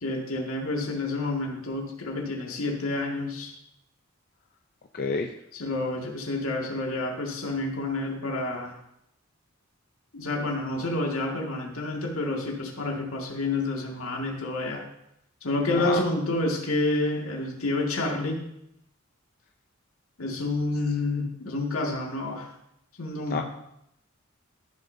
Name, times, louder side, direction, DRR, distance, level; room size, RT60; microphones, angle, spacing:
voice 1, 0.0-3.5 5.6-8.7 10.1-14.8 15.4-18.5 20.2-22.5 23.0-23.4, left 2 dB, 85° left, -1 dB, 2.0 m, -29 dB
voice 2, 4.9-5.3 15.8-16.0 23.3-23.4, left 4 dB, 45° left, 3 dB, 0.5 m, -28 dB
14.0 x 6.7 x 2.7 m, 0.80 s
head